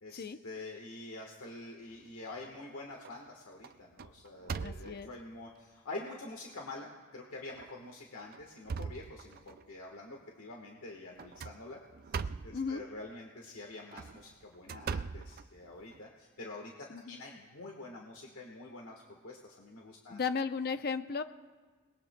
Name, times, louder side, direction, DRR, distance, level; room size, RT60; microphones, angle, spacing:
voice 1, 0.0-11.8 12.1-16.7 17.0-20.2, left 2 dB, 80° left, 0 dB, 1.4 m, -46 dB
sound 1, 2.0-2.6 3.0-3.3 3.6-5.2 5.9-6.0 6.5-6.6 7.5-7.7 8.2-9.6 11.2-12.6 13.7-16.0, right 5 dB, 45° right, 0.3 m, -41 dB
voice 2, 4.6-5.1 12.5-12.8 16.9-17.2 20.1-21.2, left 5 dB, 45° left, 10 dB, 0.6 m, -35 dB
29.0 x 20.0 x 2.2 m, 1.4 s
head